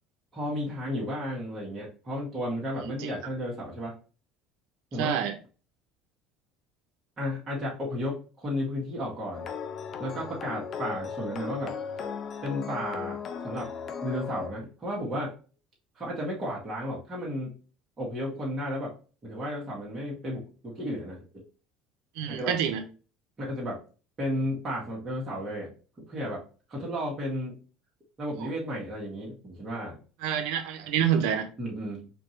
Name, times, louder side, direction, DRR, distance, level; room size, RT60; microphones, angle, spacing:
voice 1, 0.3-4.0 4.9-5.2 7.2-9.5 10.0-11.8 12.4-13.7 14.0-15.3 16.0-17.6 18.0-19.0 19.2-21.5 22.3-22.6 23.4-23.8 24.2-26.4 26.7-27.6 28.2-30.0 31.6-32.1, equal, 30° right, 1.8 m, -33 dB
voice 2, 2.8-3.1 5.0-5.4 22.2-22.8 28.4-28.5 30.2-31.5, right 9 dB, 75° right, 0.7 m, -27 dB
sound 1, 9.3-14.5, left 6 dB, 45° left, 0.6 m, -36 dB
4.3 x 2.7 x 3.1 m
supercardioid pair, 90°, 0 cm